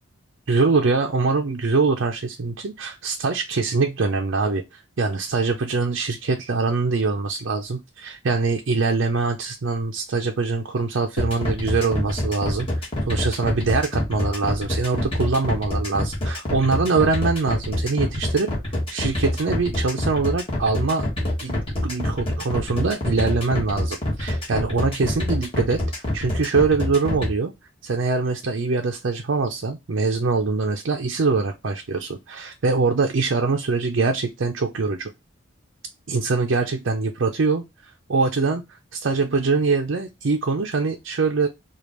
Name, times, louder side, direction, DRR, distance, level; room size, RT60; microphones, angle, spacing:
voice 1, 0.5-18.5 18.9-21.1 21.4-27.5 27.8-35.1 36.1-37.6 38.1-38.6 38.9-41.5, right 4 dB, 60° right, 2 dB, 0.5 m, -23 dB
sound 1, 11.2-27.3, left 1 dB, 25° left, 1.5 m, -26 dB
5.0 x 2.4 x 3.0 m, 0.23 s
head